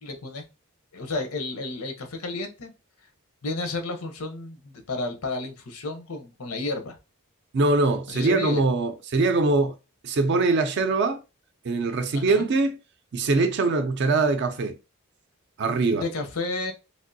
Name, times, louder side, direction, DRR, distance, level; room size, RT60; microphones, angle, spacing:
voice 1, 0.0-0.4 0.9-2.7 3.4-7.0 8.1-8.6 12.1-12.4 15.9-16.7, left 2 dB, 80° left, 0.8 m, -32 dB
voice 2, 7.5-9.8 10.0-11.2 11.6-12.8 13.1-14.8 15.6-16.0, right 3 dB, 50° right, 0.4 m, -22 dB
3.3 x 2.5 x 2.6 m
head